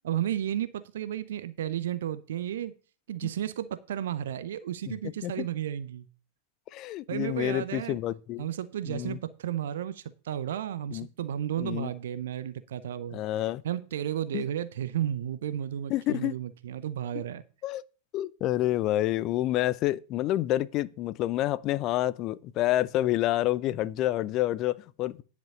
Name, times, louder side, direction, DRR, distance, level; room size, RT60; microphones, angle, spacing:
voice 1, 0.0-2.7 3.1-6.1 7.1-8.0 8.4-13.2 13.6-17.4, right 10 dB, 60° right, 0.7 m, -33 dB
voice 2, 6.7-8.5 8.9-9.2 10.9-11.1 11.6-11.9 13.1-13.6 14.3-14.4 15.9-16.4 17.1-17.2 17.6-17.8 18.1-25.2, left 14 dB, 35° left, 0.6 m, -28 dB
10.5 x 5.2 x 6.8 m
figure-of-eight pair, 90°, 0 cm